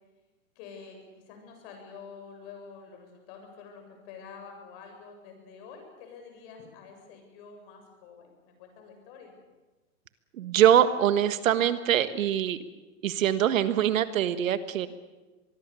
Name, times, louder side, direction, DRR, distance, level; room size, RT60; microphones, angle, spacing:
voice 1, 0.6-1.0 1.3-9.3, left 6 dB, 45° left, 4 dB, 7.6 m, -47 dB
voice 2, 10.3-12.6 13.0-14.9, right 10 dB, 70° right, 12 dB, 1.6 m, -23 dB
25.0 x 21.0 x 7.0 m, 1.2 s
hypercardioid pair, 145°, 41 cm